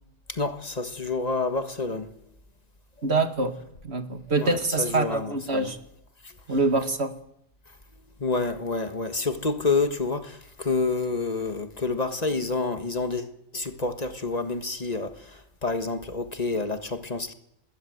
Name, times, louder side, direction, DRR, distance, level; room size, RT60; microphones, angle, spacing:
voice 1, 0.3-2.1 4.4-5.7 6.2-6.3 8.2-17.3, left 3 dB, 40° left, 1.6 m, -28 dB
voice 2, 3.0-3.6 3.8-5.8 6.5-7.1, right 3 dB, 75° right, 2.3 m, -25 dB
25.0 x 20.5 x 8.0 m
omnidirectional pair, 1.1 m